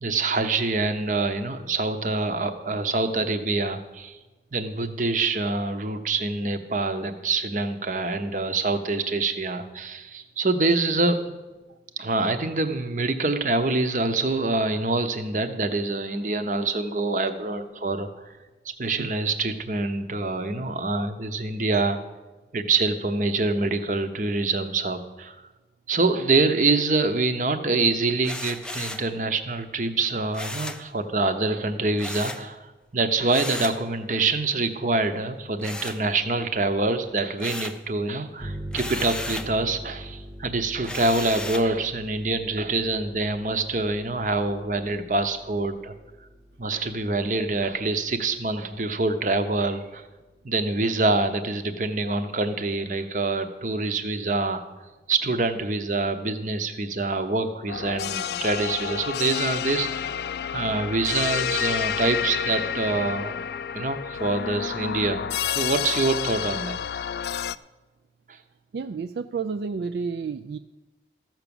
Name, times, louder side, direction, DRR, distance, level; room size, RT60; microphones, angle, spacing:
voice 1, 0.0-4.2 4.5-11.3 12.0-18.3 18.8-22.0 22.5-25.4 25.9-32.7 32.9-45.9 46.6-50.0 50.4-54.6 55.1-63.3 63.7-66.8 67.3-67.4 68.3-68.4, right 3 dB, 45° right, 8 dB, 0.8 m, -25 dB
sound 1, 28.2-29.1 30.3-30.9 32.0-32.5 33.3-33.8 35.6-36.5 36.9-37.9 38.7-39.5 40.8-41.7, left 2 dB, 5° left, 0.5 m, -35 dB
sound 2, 38.4-47.7, right 1 dB, 15° right, 0.8 m, -43 dB
sound 3, 57.7-67.6, left 8 dB, 65° left, 0.3 m, -29 dB
voice 2, 68.7-70.6, right 5 dB, 70° right, 9 dB, 0.3 m, -30 dB
14.0 x 6.0 x 7.0 m, 1.2 s
head